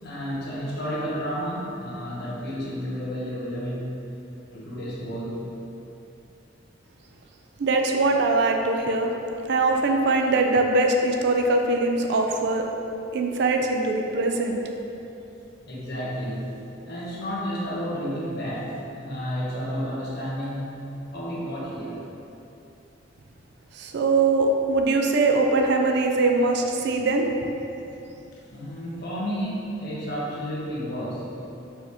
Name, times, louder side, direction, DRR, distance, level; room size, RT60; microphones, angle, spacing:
voice 1, 0.0-4.1 4.5-5.5 15.7-16.5 16.9-22.0 28.3-31.4, equal, 60° left, -5 dB, 0.9 m, -31 dB
voice 2, 7.6-9.1 9.5-12.7 13.1-14.6 23.7-27.3, right 3 dB, 60° right, 3 dB, 0.4 m, -22 dB
4.5 x 3.0 x 3.4 m, 2.9 s
head